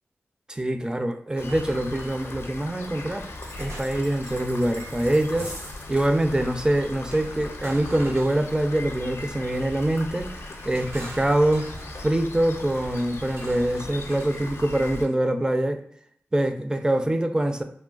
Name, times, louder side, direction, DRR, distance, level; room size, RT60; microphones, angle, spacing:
voice 1, 0.5-3.3 3.6-5.5 5.9-11.7 12.0-15.8 16.3-17.6, right 1 dB, 15° right, 7 dB, 0.4 m, -24 dB
Rain, 1.4-15.1, left 2 dB, 70° left, 0.4 m, -38 dB
sound 1, 1.4-1.7 3.1-4.2 5.3-5.8 7.1-8.9 10.2-12.0 13.3-14.6, right 2 dB, 75° right, 0.6 m, -44 dB
sound 2, 3.4-6.1, right 1 dB, 55° right, 0.9 m, -44 dB
3.1 x 2.1 x 2.4 m, 0.66 s
cardioid pair, 50°, 4 cm